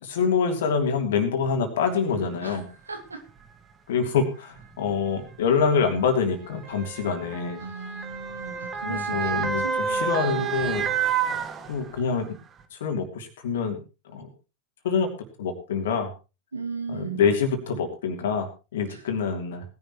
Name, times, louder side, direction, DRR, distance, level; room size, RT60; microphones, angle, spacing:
voice 1, 0.0-2.7 3.9-7.7 8.8-10.9 11.7-12.4 12.7-13.8 14.1-14.3 14.8-15.1 15.4-16.1 16.9-18.5 18.7-19.6, left 5 dB, 60° left, 5 dB, 2.9 m, -26 dB
Motor vehicle (road) / Siren, 2.2-2.3 3.3-3.5 4.6-12.2 12.6-12.7, right 6 dB, 25° right, 1.6 m, -30 dB
voice 2, 2.9-3.2 7.6-10.5 16.5-17.2 18.9-19.0, right 5 dB, 75° right, 4 dB, 2.3 m, -37 dB
19.5 x 11.0 x 3.1 m, 0.30 s
figure-of-eight pair, 90°, 0 cm